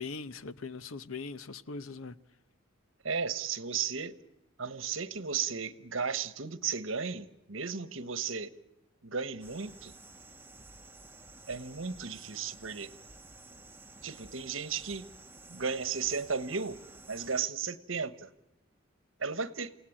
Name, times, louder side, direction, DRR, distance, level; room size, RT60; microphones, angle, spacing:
voice 1, 0.0-2.1, left 4 dB, 85° left, 0.9 m, -40 dB
voice 2, 3.0-4.2 4.6-8.6 9.0-9.9 11.5-12.9 14.0-15.1 15.5-16.8 17.1-18.3 19.2-19.7, right 5 dB, 75° right, 1.3 m, -35 dB
sound 1, 9.4-17.4, right 3 dB, 10° right, 1.3 m, -52 dB
29.0 x 17.5 x 8.8 m
head